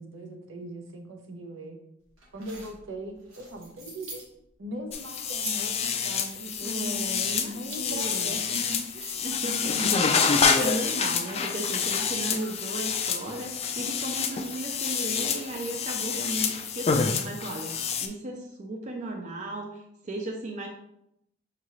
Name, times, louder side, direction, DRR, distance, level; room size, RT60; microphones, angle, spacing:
voice 1, 0.0-1.8 2.3-4.2 4.6-9.3 9.6-10.0, right 1 dB, 70° right, 3 dB, 0.7 m, -39 dB
sound 1, 2.2-4.3 5.1-5.7 6.1-8.1 8.4-9.2 9.8-10.5 10.9-11.0, right 2 dB, 85° right, 1.1 m, -43 dB
sound 2, 4.9-18.1, left 6 dB, 30° left, 0.3 m, -28 dB
voice 2, 6.6-8.4 9.2-10.2 10.6-20.7, right 2 dB, 40° right, 1 dB, 0.4 m, -36 dB
5.4 x 2.5 x 3.1 m, 0.78 s
head